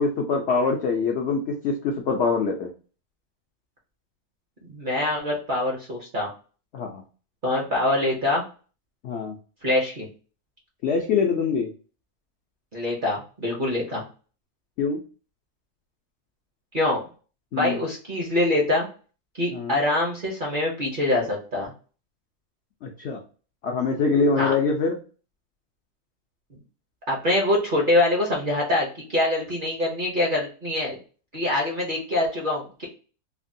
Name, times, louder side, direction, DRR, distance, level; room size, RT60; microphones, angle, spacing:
voice 1, 0.0-2.7 6.7-7.0 9.0-9.3 10.8-11.7 14.8-15.0 17.5-17.8 19.5-19.8 22.8-23.2 23.6-25.0, left 4 dB, 75° left, 2 dB, 0.6 m, -24 dB
voice 2, 4.7-6.3 7.4-8.4 9.6-10.1 12.7-14.0 16.7-17.0 17.5-18.9 19.4-21.7 24.4-24.5 27.1-31.0 31.3-32.8, left 1 dB, 50° right, -1 dB, 0.6 m, -24 dB
3.3 x 2.1 x 2.5 m, 0.37 s
omnidirectional pair, 1.7 m